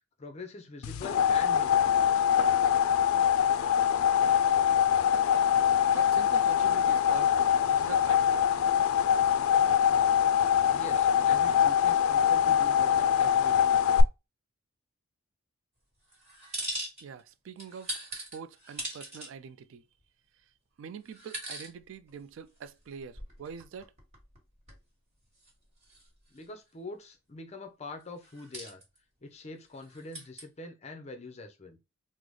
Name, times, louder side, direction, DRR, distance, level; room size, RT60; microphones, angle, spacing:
voice 1, 0.2-2.1 10.7-13.7 26.3-28.8 29.2-31.8, left 2 dB, 30° left, 0.5 m, -44 dB
sound 1, 0.8-14.0, left 9 dB, 80° left, 0.3 m, -24 dB
voice 2, 5.9-8.3 17.0-19.8 20.8-23.9, right 6 dB, 65° right, 0.3 m, -45 dB
sound 2, 16.1-17.3 17.6-19.3 20.0-20.1 21.1-21.7 22.1-22.2 22.8-24.4 24.7-24.8 25.4-25.5 25.8-26.4 28.2-29.0 29.8-30.4, right 1 dB, 30° right, 1.4 m, -40 dB
3.8 x 2.0 x 3.1 m
head